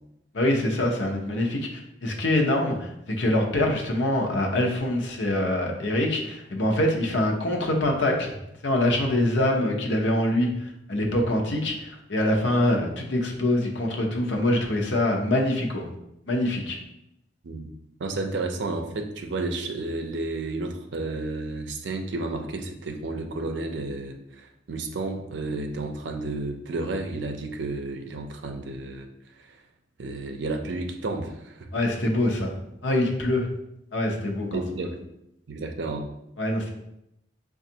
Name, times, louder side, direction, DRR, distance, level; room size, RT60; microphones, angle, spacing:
voice 1, 0.3-8.3 8.6-15.9 16.3-16.8 31.7-32.5 32.8-33.5 33.9-34.6 36.4-36.7, left 1 dB, 75° left, 2 dB, 0.7 m, -24 dB
voice 2, 18.0-29.1 29.4-29.6 30.0-31.7 34.5-35.0 35.5-36.1, right 2 dB, 65° right, 5 dB, 0.5 m, -32 dB
5.8 x 2.4 x 2.7 m, 0.81 s
head